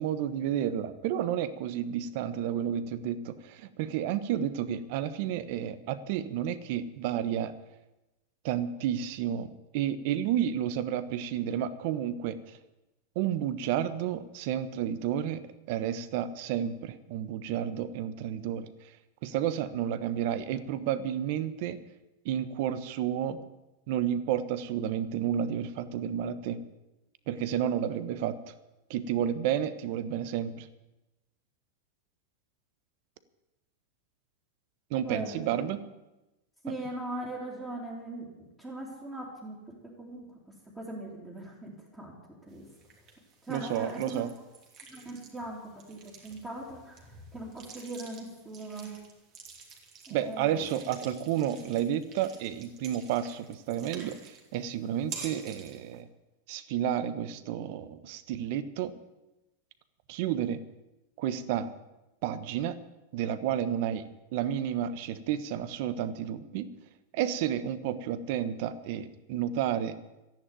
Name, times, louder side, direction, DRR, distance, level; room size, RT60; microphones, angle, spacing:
voice 1, 0.0-7.5 8.4-12.4 13.1-15.4 15.7-18.7 19.2-21.8 22.2-23.4 23.9-26.6 27.3-28.4 28.9-30.7 34.9-35.8 36.7-36.8 43.5-44.3 50.1-56.1 56.5-58.9 60.1-60.6 61.2-61.7 62.2-62.8 63.1-64.0 64.3-66.7 67.1-70.0, right 10 dB, 50° right, 13 dB, 1.1 m, -31 dB
voice 2, 35.0-35.7 36.6-38.3 38.6-39.6 39.8-40.3 40.7-42.1 42.5-42.7 43.5-44.3 44.9-47.0 47.3-48.9 50.1-50.7, right 1 dB, 5° right, -7 dB, 3.1 m, -40 dB
sound 1, 42.5-56.0, right 5 dB, 35° right, 3.0 m, -49 dB
13.5 x 11.0 x 9.1 m, 1.0 s
supercardioid pair, 155°, 0 cm